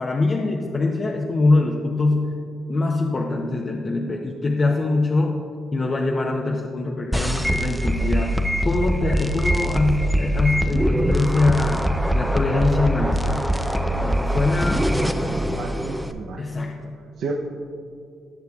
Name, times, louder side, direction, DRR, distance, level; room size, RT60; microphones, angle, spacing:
voice 1, 0.0-2.3 2.7-5.4 5.7-8.3 8.6-11.8 12.1-13.4 14.0-15.1 16.4-16.9, left 2 dB, 35° left, 0 dB, 0.8 m, -23 dB
sound 1, 7.1-16.1, equal, ahead, 0.5 m, -23 dB
voice 2, 15.1-16.4 17.2-17.3, right 5 dB, 70° right, 0 dB, 0.7 m, -33 dB
17.5 x 6.7 x 2.4 m, 2.4 s
cardioid pair, 90°, 0 cm